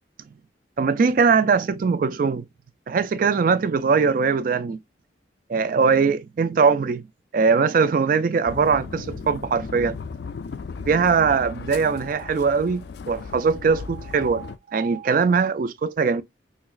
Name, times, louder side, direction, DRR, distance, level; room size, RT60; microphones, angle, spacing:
voice 1, 0.8-2.4 2.9-4.8 5.5-7.0 7.3-10.0 10.9-16.2, right 5 dB, 45° right, 0.3 m, -21 dB
sound 1, 8.4-14.6, left 5 dB, 60° left, 0.3 m, -36 dB
5.8 x 2.1 x 2.4 m
head